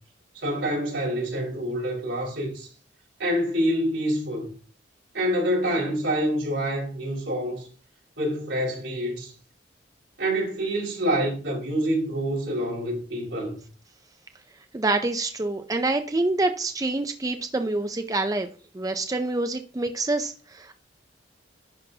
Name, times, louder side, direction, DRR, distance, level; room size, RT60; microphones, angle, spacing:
voice 1, 0.3-2.7 3.2-4.5 5.1-7.7 8.2-9.3 10.2-13.6, equal, 80° right, 4.5 m, -26 dB
voice 2, 14.7-18.5 18.7-20.8, right 2 dB, 20° right, 0.4 m, -26 dB
10.5 x 5.6 x 2.8 m
head